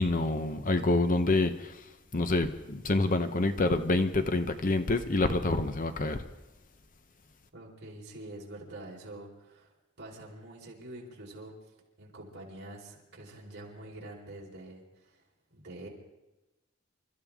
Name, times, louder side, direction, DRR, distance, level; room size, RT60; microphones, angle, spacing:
voice 1, 0.0-1.8 2.1-6.2, left 2 dB, 40° left, 0.9 m, -27 dB
voice 2, 7.5-11.5 12.0-15.2 15.5-15.9, right 1 dB, 50° right, 4.3 m, -46 dB
28.5 x 14.0 x 3.6 m
head